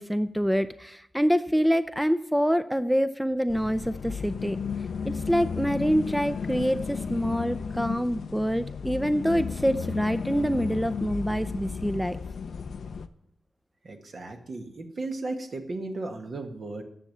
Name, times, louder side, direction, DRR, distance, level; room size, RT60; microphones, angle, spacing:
voice 1, 0.0-4.6 5.0-12.2, equal, 5° right, 12 dB, 0.5 m, -26 dB
sound 1, 3.5-13.1, left 5 dB, 80° left, 0.5 m, -34 dB
voice 2, 13.8-16.8, right 2 dB, 60° right, 4 dB, 1.5 m, -35 dB
10.0 x 6.9 x 7.3 m, 0.74 s
cardioid pair, 75°, 0 cm